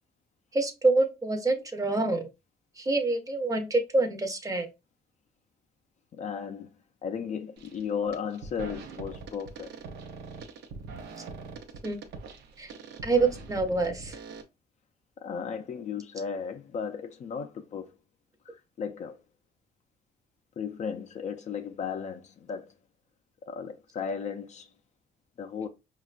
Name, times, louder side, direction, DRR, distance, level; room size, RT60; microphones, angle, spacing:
voice 1, 0.5-2.2 2.8-4.7 11.8-12.0 12.6-12.7 13.0-14.2, right 3 dB, 20° right, 0.6 m, -26 dB
voice 2, 6.2-6.7 7.0-9.7 15.2-17.9 18.5-19.2 20.6-22.7 23.4-24.7 25.4-25.7, left 6 dB, 45° left, 0.4 m, -35 dB
sound 1, 7.6-7.8 8.1-14.4, right 4 dB, 90° right, 0.6 m, -43 dB
5.0 x 2.2 x 2.3 m
cardioid pair, 125°, 17 cm